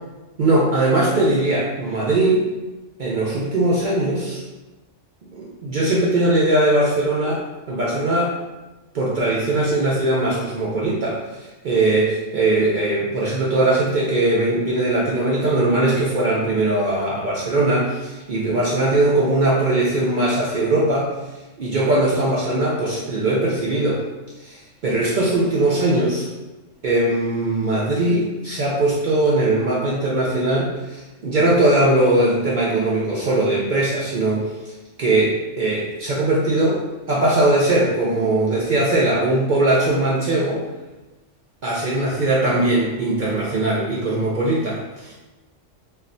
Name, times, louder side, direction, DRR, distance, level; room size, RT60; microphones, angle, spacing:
voice 1, 0.4-2.4 3.0-4.4 5.3-8.4 8.9-11.2 11.6-21.1 21.6-24.0 24.4-24.6 24.8-26.3 26.8-34.5 35.0-36.8 37.1-40.6 41.6-45.1, right 2 dB, 60° right, -6 dB, 0.5 m, -20 dB
2.4 x 2.2 x 3.8 m, 1.1 s
omnidirectional pair, 1.3 m